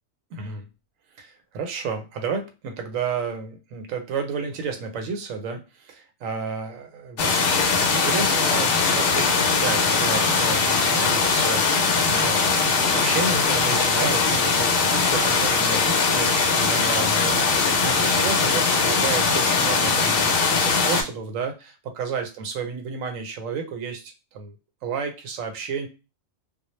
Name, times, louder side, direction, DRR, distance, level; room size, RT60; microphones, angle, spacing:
voice 1, 0.3-0.7 1.2-7.6 7.9-12.4 12.9-24.6 24.8-25.9, right 5 dB, 90° right, 5 dB, 1.0 m, -32 dB
sound 1, 7.2-21.0, left 4 dB, 60° left, 0.6 m, -21 dB
2.2 x 2.0 x 3.0 m, 0.29 s
omnidirectional pair, 1.3 m